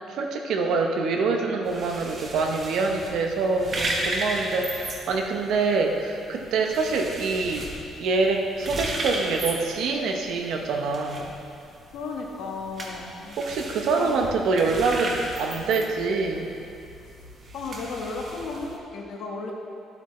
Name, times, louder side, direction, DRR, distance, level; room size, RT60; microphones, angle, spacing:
voice 1, 0.1-7.7 8.0-11.3 13.4-16.5, right 4 dB, 75° right, 2 dB, 0.9 m, -25 dB
sound 1, 1.6-18.8, right 2 dB, 35° right, 1.2 m, -35 dB
voice 2, 11.9-13.4 14.0-14.3 17.5-19.5, left 3 dB, 75° left, 0 dB, 1.2 m, -34 dB
12.0 x 8.2 x 3.2 m, 2.6 s
cardioid pair, 150°, 0 cm